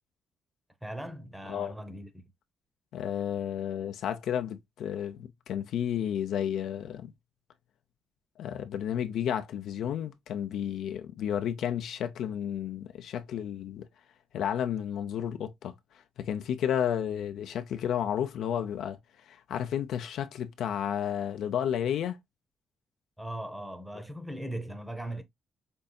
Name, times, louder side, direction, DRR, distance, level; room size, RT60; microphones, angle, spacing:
voice 1, 0.8-2.1 23.2-25.2, right 1 dB, 5° right, 0.8 m, -39 dB
voice 2, 2.9-7.1 8.4-13.8 14.3-15.7 16.2-19.0 19.3-22.2, left 9 dB, 75° left, 0.5 m, -32 dB
5.4 x 2.7 x 2.2 m
cardioid pair, 90°, 0 cm